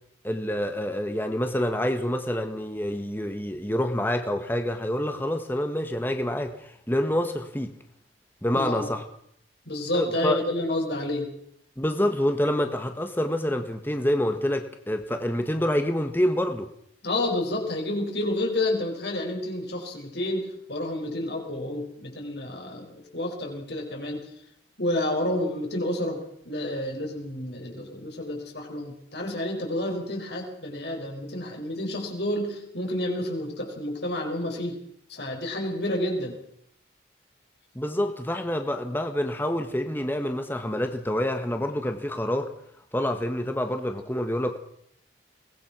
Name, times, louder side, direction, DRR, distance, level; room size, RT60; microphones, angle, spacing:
voice 1, 0.2-7.7 8.4-9.0 9.9-10.4 11.8-16.7 37.7-42.5 42.9-44.6, left 1 dB, 10° left, 6 dB, 1.5 m, -27 dB
voice 2, 8.5-8.9 9.7-11.3 17.0-24.3 24.8-34.8 35.1-36.4, left 1 dB, 65° left, 1 dB, 5.3 m, -30 dB
22.5 x 19.0 x 6.2 m, 0.70 s
head